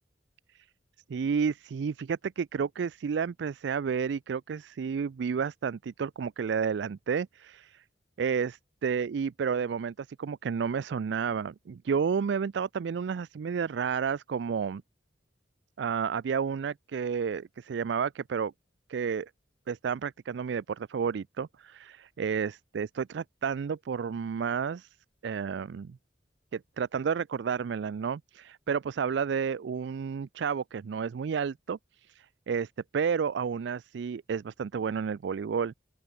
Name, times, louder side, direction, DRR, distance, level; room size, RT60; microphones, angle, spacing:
voice 1, 1.1-7.8 8.2-14.8 15.8-18.5 18.9-19.3 19.7-24.9 25.2-26.0 26.5-31.8 32.1-35.7, right 6 dB, 65° right, 0.4 m, -31 dB
open air
head